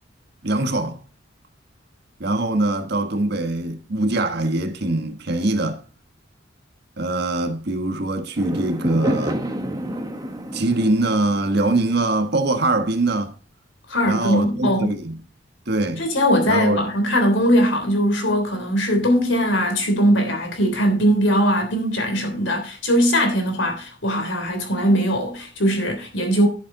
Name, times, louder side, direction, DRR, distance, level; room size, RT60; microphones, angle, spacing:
voice 1, 0.4-1.0 2.2-5.8 7.0-9.4 10.5-13.3 14.0-15.2 15.7-16.1 16.5-16.8, right 2 dB, 60° right, 1.4 m, -22 dB
Fireworks, 8.4-12.8, equal, 20° right, 1.1 m, -29 dB
voice 2, 13.9-14.9 16.0-26.5, equal, 85° left, 3.3 m, -20 dB
11.0 x 7.4 x 3.8 m
head